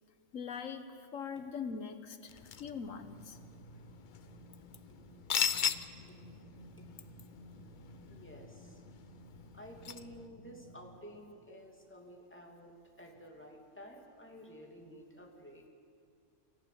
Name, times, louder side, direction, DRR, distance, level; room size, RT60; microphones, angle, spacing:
voice 1, 0.3-3.4, left 6 dB, 90° left, 9 dB, 1.5 m, -42 dB
sound 1, 2.3-10.3, left 8 dB, 50° left, 0.7 m, -40 dB
sound 2, 3.0-10.8, right 1 dB, 20° right, 6.1 m, -55 dB
voice 2, 8.1-8.8 9.5-15.7, equal, 10° left, 0 dB, 2.8 m, -52 dB
24.0 x 15.0 x 9.4 m, 2.3 s
omnidirectional pair, 1.3 m